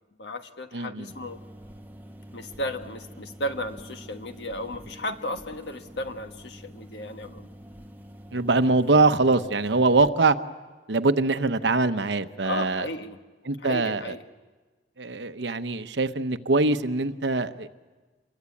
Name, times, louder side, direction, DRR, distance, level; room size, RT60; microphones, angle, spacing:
voice 1, 0.2-1.4 2.3-7.5 12.4-13.2 13.6-14.2, left 1 dB, 80° left, 7 dB, 1.5 m, -34 dB
voice 2, 0.7-1.1 8.3-10.4 10.9-12.8 13.4-14.1 15.0-17.7, right 3 dB, 85° right, 10 dB, 1.0 m, -23 dB
sound 1, 1.1-10.1, equal, 10° right, 1.0 m, -46 dB
27.0 x 23.0 x 8.5 m, 1.3 s
head